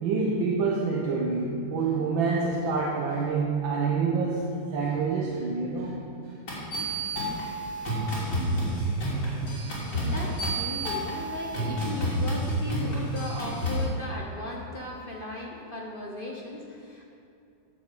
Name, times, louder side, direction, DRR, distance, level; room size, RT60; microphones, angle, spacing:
voice 1, 0.0-5.9 9.5-9.7 9.9-10.1, right 4 dB, 75° right, -2 dB, 1.8 m, -27 dB
sound 1, 6.5-13.8, right 1 dB, 60° left, 3.7 m, -29 dB
voice 2, 9.9-17.0, left 2 dB, 35° left, -1 dB, 0.9 m, -37 dB
9.3 x 7.8 x 7.5 m, 2.6 s
omnidirectional pair, 2.1 m